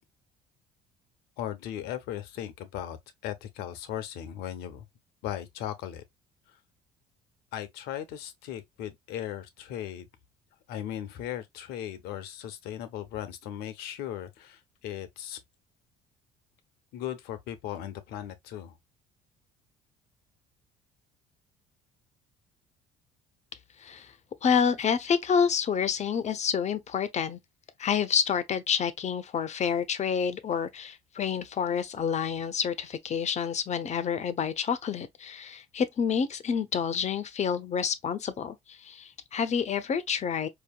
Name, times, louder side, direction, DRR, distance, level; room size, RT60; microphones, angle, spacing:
voice 1, 1.4-3.0 3.2-4.9 5.2-6.0 7.5-10.1 10.7-15.4 16.9-18.7, left 11 dB, 70° left, 0.9 m, -37 dB
voice 2, 23.8-24.1 24.4-27.4 27.8-40.5, left 7 dB, 40° left, 0.8 m, -28 dB
4.7 x 2.9 x 2.3 m
hypercardioid pair, 65°, 17 cm